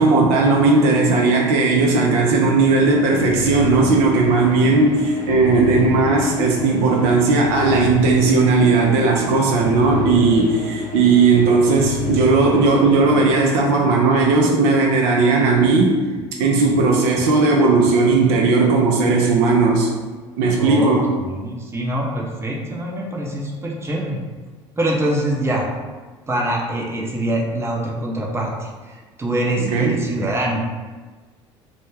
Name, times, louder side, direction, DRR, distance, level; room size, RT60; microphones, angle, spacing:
voice 1, 0.0-16.0 16.4-19.9 20.4-21.1 29.6-30.3, right 3 dB, 65° right, -1 dB, 0.5 m, -16 dB
sound 1, 2.3-14.2, left 6 dB, 45° left, 0.6 m, -31 dB
voice 2, 20.6-20.9 21.2-24.2 24.8-25.7 26.3-30.6, right 1 dB, 15° right, -2 dB, 0.6 m, -24 dB
2.2 x 2.2 x 3.2 m, 1.4 s
hypercardioid pair, 65°, 15 cm